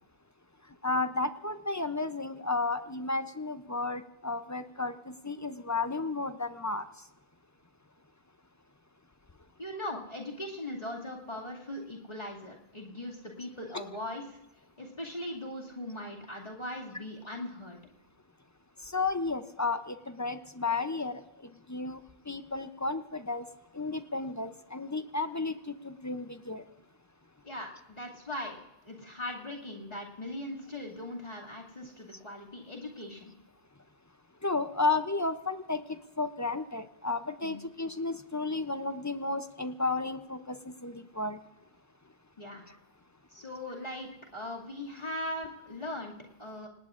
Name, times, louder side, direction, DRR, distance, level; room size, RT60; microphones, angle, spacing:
voice 1, 0.8-6.9 18.8-22.0 22.3-23.5 23.7-26.6 34.4-41.4, left 3 dB, 25° left, 10 dB, 0.4 m, -33 dB
voice 2, 9.6-14.4 14.8-17.8 27.4-28.6 28.8-33.3 37.4-37.6 42.4-42.6 43.3-46.7, left 1 dB, 40° left, -3 dB, 2.5 m, -40 dB
27.5 x 18.0 x 2.5 m, 0.96 s
omnidirectional pair, 1.0 m